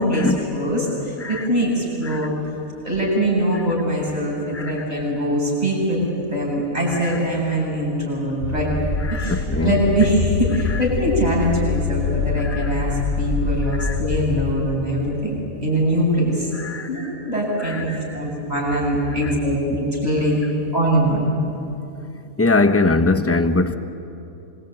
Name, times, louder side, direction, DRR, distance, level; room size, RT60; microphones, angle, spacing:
voice 1, 0.5-2.4 2.8-6.0 6.3-8.7 9.1-16.5 16.8-20.4 20.7-21.2, right 1 dB, 25° right, 8.2 m, -22 dB
sound 1, 8.4-14.6, left 5 dB, 50° left, 3.1 m, -25 dB
voice 2, 9.1-9.7 12.4-12.7 13.8-14.0 16.5-16.9 17.6-17.8 22.4-23.8, left 3 dB, 10° left, 0.9 m, -21 dB
26.0 x 24.0 x 9.2 m
omnidirectional pair, 1.5 m